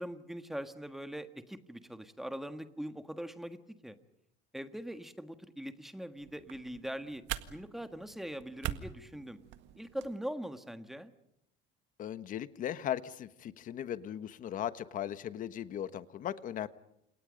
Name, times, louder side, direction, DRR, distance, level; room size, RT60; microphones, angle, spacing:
voice 1, 0.0-4.0 4.5-7.2 7.5-9.4 9.8-11.1, equal, ahead, 9 dB, 1.6 m, -42 dB
sound 1, 6.2-10.1, right 13 dB, 70° right, 1.8 m, -43 dB
voice 2, 12.0-16.7, left 10 dB, 40° left, 13 dB, 1.3 m, -38 dB
30.0 x 28.0 x 5.3 m, 0.77 s
cardioid pair, 160°, 20 cm